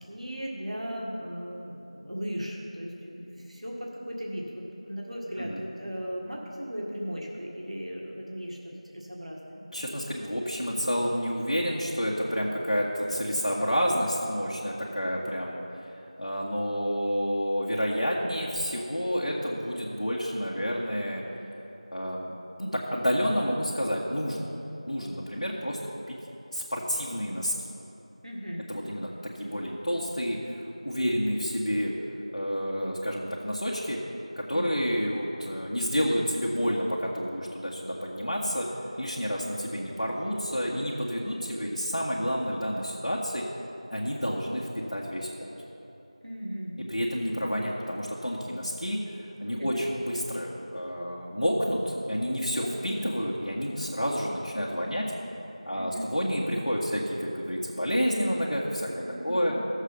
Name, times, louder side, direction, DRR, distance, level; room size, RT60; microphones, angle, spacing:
voice 1, 0.0-8.6 8.8-9.6 28.2-28.7 34.5-34.7 46.2-46.8 49.6-49.8 52.5-52.7 55.7-56.1 59.0-59.6, equal, 65° right, -2 dB, 1.8 m, -37 dB
voice 2, 9.7-15.6 16.2-21.2 21.9-22.3 22.6-24.5 24.9-25.8 26.1-26.2 26.5-27.5 28.7-29.1 29.4-31.9 32.3-34.0 34.4-38.7 39.0-43.4 43.9-45.5 46.9-49.0 49.4-55.1 55.7-58.9 59.2-59.5, equal, 80° left, -6 dB, 1.6 m, -29 dB
13.0 x 7.3 x 5.3 m, 3.0 s
figure-of-eight pair, 175°, 4 cm